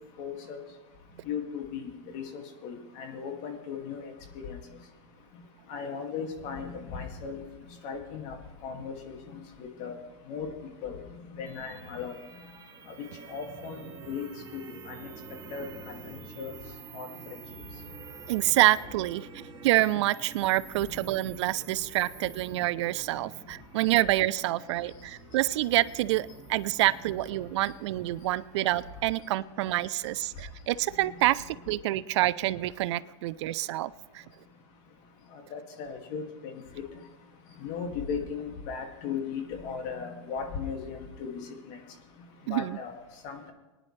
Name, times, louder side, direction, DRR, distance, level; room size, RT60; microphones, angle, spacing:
voice 1, 0.2-0.6 1.3-4.6 5.7-7.4 7.8-8.4 8.6-10.0 10.3-10.5 10.8-11.0 11.3-12.2 13.3-14.2 14.5-15.1 15.5-15.7 16.0-16.5 16.9-17.1 31.0-31.3 35.5-36.5 37.6-41.8 42.5-43.5, left 6 dB, 45° left, 3 dB, 2.2 m, -37 dB
sound 1, 11.5-29.1, right 4 dB, 20° right, 2.0 m, -48 dB
voice 2, 18.3-34.2 42.5-42.8, right 16 dB, 60° right, 16 dB, 0.5 m, -27 dB
22.0 x 10.0 x 3.2 m, 1.1 s
hypercardioid pair, 130°, 16 cm